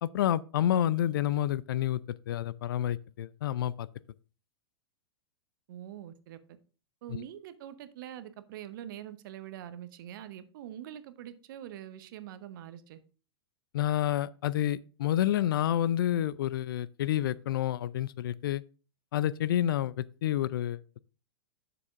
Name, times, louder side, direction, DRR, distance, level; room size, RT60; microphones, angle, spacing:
voice 1, 0.0-3.9 7.1-7.2 13.7-18.6 19.1-21.0, left 11 dB, 60° left, 0.4 m, -29 dB
voice 2, 5.7-6.4 7.0-13.0, right 11 dB, 55° right, 0.8 m, -44 dB
10.5 x 6.8 x 2.5 m
figure-of-eight pair, 100°, 13 cm